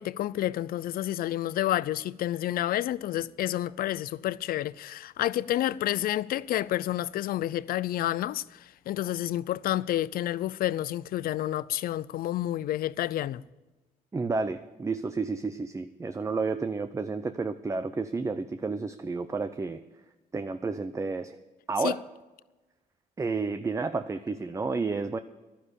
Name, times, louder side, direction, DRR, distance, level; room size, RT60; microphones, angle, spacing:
voice 1, 0.0-8.4 8.9-13.4 21.8-21.9, left 13 dB, 70° left, 0.5 m, -29 dB
voice 2, 14.1-19.8 20.3-21.4 21.7-22.0 23.2-25.2, right 4 dB, 20° right, 0.6 m, -31 dB
11.0 x 10.0 x 8.3 m
cardioid pair, 95°, 16 cm